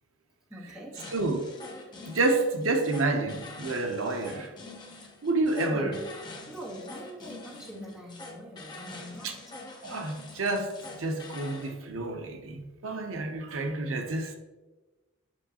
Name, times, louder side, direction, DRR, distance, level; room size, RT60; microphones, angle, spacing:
voice 1, 0.5-1.0 5.5-6.1 6.5-9.4, equal, 5° right, -5 dB, 1.2 m, -42 dB
sound 1, 0.9-11.7, left 2 dB, 20° left, 0.7 m, -45 dB
voice 2, 2.1-4.5 5.2-6.0 9.2-9.3 9.8-14.4, right 2 dB, 75° right, 5 dB, 0.7 m, -29 dB
6.1 x 5.5 x 2.8 m, 1.2 s
head